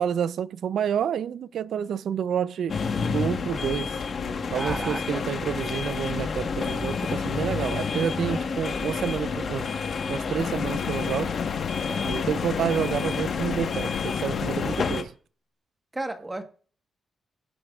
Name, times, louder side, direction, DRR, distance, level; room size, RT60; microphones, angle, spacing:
voice 1, 0.0-2.7 3.1-3.9 4.5-9.7 10.1-11.3 12.0-15.1, right 8 dB, 75° right, 0.5 m, -29 dB
sound 1, 2.7-15.0, left 5 dB, 50° left, 1.2 m, -29 dB
voice 2, 4.5-5.2 11.8-12.1 15.9-16.4, right 2 dB, 15° right, 1.2 m, -33 dB
sound 2, 10.4-14.8, left 8 dB, 80° left, 0.9 m, -32 dB
18.0 x 7.8 x 2.4 m
wide cardioid pair, 150°, 0 cm